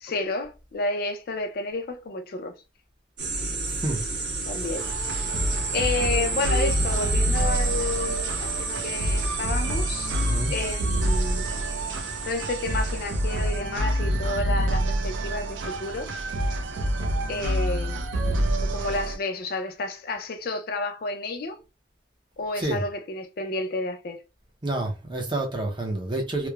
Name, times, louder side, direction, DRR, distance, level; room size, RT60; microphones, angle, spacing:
voice 1, 0.0-2.5 4.5-4.9 5.7-10.1 10.5-11.5 12.3-16.1 17.3-18.0 18.6-21.6 22.4-24.2, left 2 dB, 55° left, 0.4 m, -30 dB
sound 1, 3.2-13.6, right 3 dB, 65° right, 1.0 m, -31 dB
voice 2, 3.7-4.0 5.6-5.7 10.2-10.5 22.6-22.8 24.6-26.5, right 2 dB, 25° right, 0.5 m, -29 dB
sound 2, 4.8-19.2, right 1 dB, 85° right, 0.4 m, -27 dB
3.0 x 2.0 x 2.2 m
head